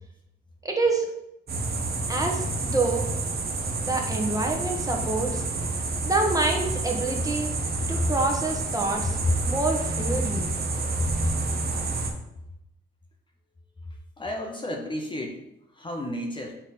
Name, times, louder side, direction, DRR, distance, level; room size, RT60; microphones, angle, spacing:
voice 1, 0.6-1.1 2.1-3.1 3.8-5.4 6.0-7.5 7.9-9.2 9.4-10.5, right 2 dB, 15° right, 1 dB, 1.2 m, -27 dB
sound 1, 1.5-12.1, right 3 dB, 50° right, 1.1 m, -29 dB
voice 2, 9.0-9.3 11.0-11.1 14.2-15.4 15.8-16.6, left 1 dB, 25° left, 1 dB, 0.9 m, -29 dB
6.0 x 4.0 x 4.2 m, 0.84 s
cardioid pair, 90°, 20 cm